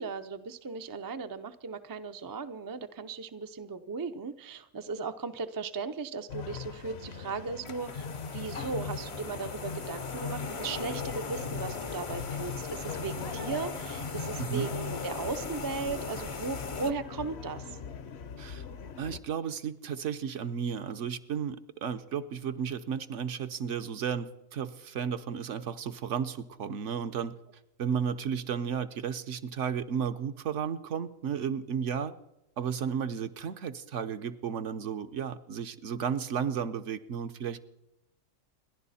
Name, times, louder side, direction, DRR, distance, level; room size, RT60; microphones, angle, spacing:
voice 1, 0.0-17.8, right 4 dB, 30° right, 8 dB, 0.4 m, -37 dB
sound 1, 6.3-19.2, left 6 dB, 55° left, 1.0 m, -40 dB
sound 2, 7.6-16.9, left 4 dB, 35° left, 0.6 m, -39 dB
voice 2, 14.4-14.7 18.4-18.6 19.0-27.3 27.8-32.1 32.6-37.6, right 7 dB, 65° right, 10 dB, 1.1 m, -33 dB
29.0 x 11.0 x 4.2 m, 0.88 s
omnidirectional pair, 1.4 m